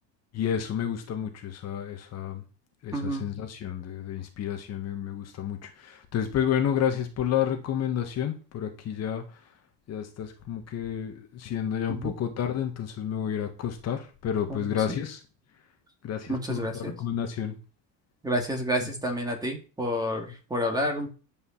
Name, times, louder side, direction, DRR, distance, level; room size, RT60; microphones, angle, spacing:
voice 1, 0.3-2.4 2.8-9.2 9.9-15.2 16.0-17.6 18.8-18.9, left 9 dB, 35° left, 5 dB, 1.7 m, -30 dB
voice 2, 2.9-3.2 11.9-12.1 14.5-14.7 16.3-16.9 18.2-21.1, equal, 10° right, 3 dB, 2.4 m, -29 dB
10.5 x 5.6 x 7.3 m, 0.34 s
cardioid pair, 155°, 43 cm